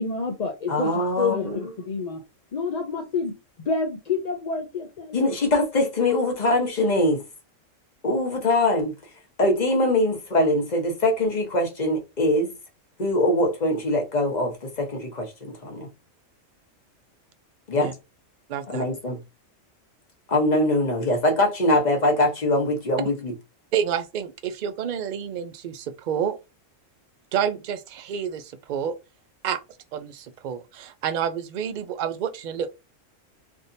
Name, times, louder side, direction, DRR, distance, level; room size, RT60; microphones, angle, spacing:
voice 1, 0.0-2.2 2.5-3.4 3.6-5.2, left 4 dB, 50° left, 0.5 m, -28 dB
voice 2, 0.7-1.6 5.1-7.2 8.0-8.9 9.4-12.5 13.0-15.9 17.7-17.9 18.7-19.2 20.3-23.3, left 1 dB, 35° left, 1.1 m, -23 dB
voice 3, 18.5-18.9 23.7-26.4 27.3-28.9 29.4-29.6 29.9-32.7, right 8 dB, 65° right, 0.4 m, -29 dB
3.4 x 2.7 x 2.6 m
omnidirectional pair, 1.3 m